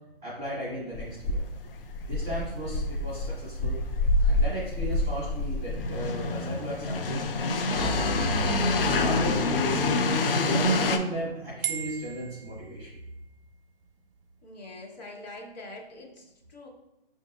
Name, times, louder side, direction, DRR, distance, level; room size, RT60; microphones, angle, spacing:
voice 1, 0.2-1.4 2.1-3.8 4.3-7.2 7.6-8.3 8.9-9.8 10.3-12.9, right 1 dB, 5° right, -12 dB, 0.4 m, -35 dB
sound 1, 0.9-11.0, left 2 dB, 65° left, 0.5 m, -27 dB
sound 2, 7.8-10.7, left 1 dB, 85° left, 1.4 m, -31 dB
sound 3, 11.6-13.2, right 9 dB, 65° right, 0.5 m, -39 dB
voice 2, 14.4-16.7, left 2 dB, 45° left, -1 dB, 0.9 m, -44 dB
5.1 x 2.7 x 2.5 m, 0.94 s
hypercardioid pair, 155°, 30 cm